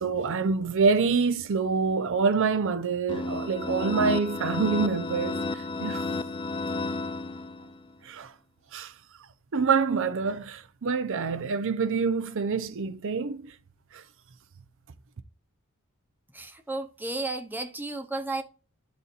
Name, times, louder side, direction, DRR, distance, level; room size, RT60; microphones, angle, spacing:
voice 1, 0.0-6.1 8.0-8.3 8.7-8.9 9.5-13.5 13.9-14.0, right 5 dB, 65° right, 0.6 m, -26 dB
sound 1, 3.1-7.8, left 3 dB, 25° left, 0.3 m, -32 dB
voice 2, 16.3-18.4, right 2 dB, 10° right, 0.7 m, -33 dB
10.5 x 4.1 x 2.5 m
head